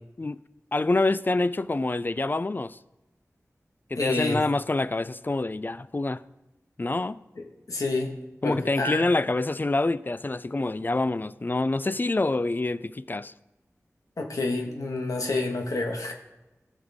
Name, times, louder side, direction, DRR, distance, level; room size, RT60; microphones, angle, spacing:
voice 1, 0.7-2.8 3.9-6.2 6.8-7.2 8.4-13.3, left 2 dB, 35° left, 0.4 m, -26 dB
voice 2, 4.0-4.4 7.4-8.1 8.4-9.1 14.2-16.1, left 2 dB, 85° left, 1.4 m, -28 dB
16.5 x 6.4 x 3.6 m
wide cardioid pair, 50°, 6 cm